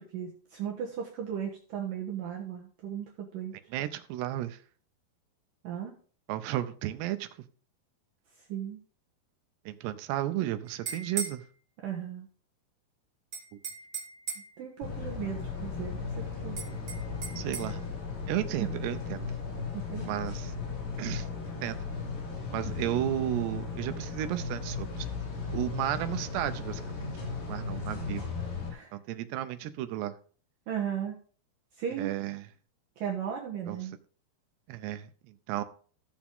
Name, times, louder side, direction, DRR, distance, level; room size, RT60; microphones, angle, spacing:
voice 1, 0.0-3.5 5.6-5.9 8.5-8.8 11.8-12.3 14.6-16.6 18.6-18.7 19.7-20.1 22.6-22.7 28.7-28.9 30.7-31.2 31.8-32.1 33.0-33.9, right 9 dB, 65° right, -1 dB, 2.5 m, -36 dB
voice 2, 3.7-4.6 6.3-7.3 9.7-11.4 17.4-17.8 18.3-19.3 20.1-20.5 21.0-21.8 22.5-25.1 25.5-27.1 27.5-28.2 28.9-30.1 32.0-32.4 33.7-33.8 34.7-35.6, right 13 dB, 85° right, 11 dB, 2.9 m, -33 dB
sound 1, 10.7-11.4 13.3-14.6 16.6-17.7, right 6 dB, 40° right, 1.4 m, -37 dB
sound 2, 14.8-28.7, left 4 dB, 85° left, 5.3 m, -36 dB
15.0 x 7.2 x 3.7 m, 0.44 s
omnidirectional pair, 4.8 m